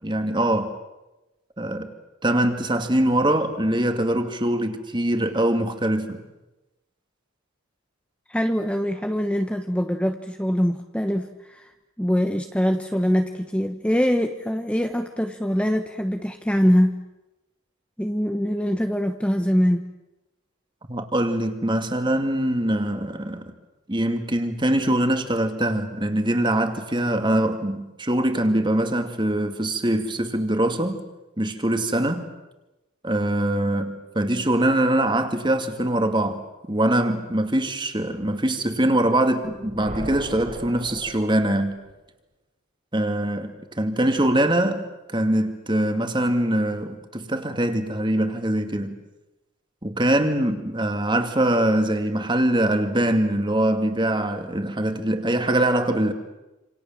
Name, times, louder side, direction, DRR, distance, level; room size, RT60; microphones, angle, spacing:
voice 1, 0.0-0.7 1.6-1.9 2.2-6.2 20.9-23.5 23.9-31.0 31.4-32.3 33.0-36.4 36.7-41.8 42.9-49.0 49.8-56.1, right 1 dB, 20° right, 2.4 m, -23 dB
voice 2, 8.3-11.7 12.0-16.9 18.0-19.8, equal, 5° left, 1.1 m, -23 dB
sound 1, 39.4-42.0, right 1 dB, 40° right, 3.4 m, -38 dB
28.0 x 27.5 x 7.5 m
head